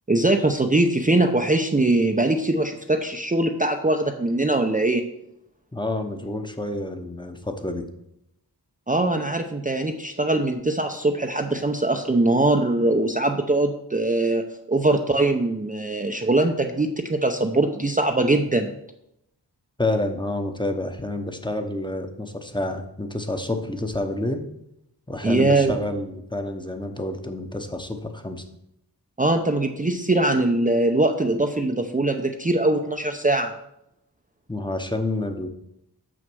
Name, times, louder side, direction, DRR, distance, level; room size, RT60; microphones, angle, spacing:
voice 1, 0.1-5.1 8.9-18.7 25.2-25.8 29.2-33.5, right 2 dB, 20° right, 3 dB, 0.7 m, -22 dB
voice 2, 5.7-7.8 19.8-24.4 25.1-28.4 34.5-35.5, left 2 dB, 10° left, 5 dB, 1.0 m, -28 dB
6.4 x 6.2 x 6.2 m, 0.81 s
wide cardioid pair, 65°, 41 cm